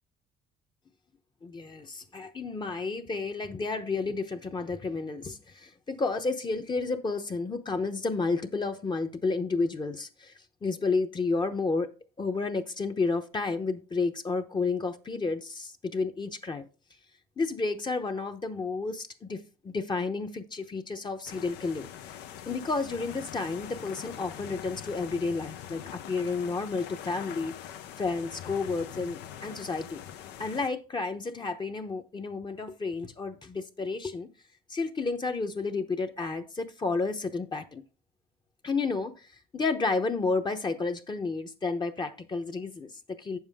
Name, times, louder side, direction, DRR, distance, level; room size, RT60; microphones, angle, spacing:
voice 1, 1.4-10.3 10.6-11.9 12.2-16.6 17.4-22.2 22.5-30.0 30.4-34.3 34.7-37.8 38.6-39.3 39.5-43.4, left 4 dB, 25° left, 0.9 m, -31 dB
sound 1, 21.3-30.7, left 10 dB, 90° left, 0.8 m, -43 dB
8.3 x 7.3 x 3.6 m
cardioid pair, 110°, 17 cm